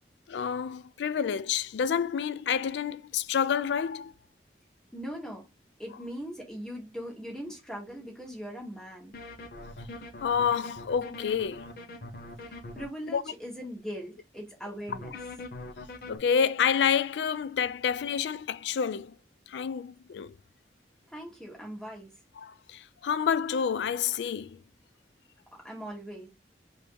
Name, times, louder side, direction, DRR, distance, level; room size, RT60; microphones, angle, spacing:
voice 1, 0.3-4.1 10.2-11.7 13.1-13.2 16.1-19.1 19.5-20.3 22.4-24.6, left 7 dB, 80° left, 0.3 m, -28 dB
voice 2, 4.9-5.5 5.8-9.2 12.4-15.2 21.1-22.1 25.5-26.3, equal, 5° left, 1.4 m, -40 dB
sound 1, 9.1-12.9 14.9-16.2, left 2 dB, 55° left, 0.8 m, -42 dB
3.4 x 2.7 x 4.6 m
head